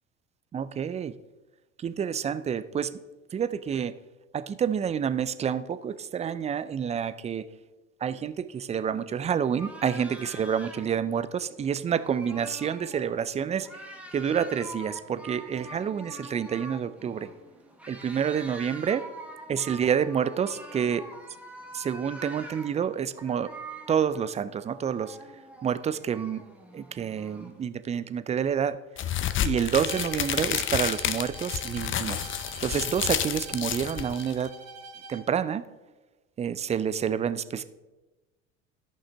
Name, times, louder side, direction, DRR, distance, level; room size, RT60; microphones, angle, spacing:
voice 1, 0.5-1.1 1.8-2.9 3.3-3.9 4.3-7.5 8.0-17.3 17.9-19.0 19.5-21.0 21.7-23.5 23.9-25.2 25.6-26.4 26.7-28.8 29.4-32.3 32.6-34.5 35.1-35.6 36.4-37.6, right 8 dB, 20° right, 15 dB, 0.4 m, -28 dB
sound 1, 9.6-27.7, right 1 dB, 5° right, 1.2 m, -45 dB
sound 2, 29.0-34.5, left 10 dB, 35° left, 0.6 m, -30 dB
Bowed string instrument, 29.8-35.3, right 3 dB, 45° right, 1.2 m, -44 dB
13.0 x 5.6 x 3.4 m, 1.1 s
hypercardioid pair, 65°, 37 cm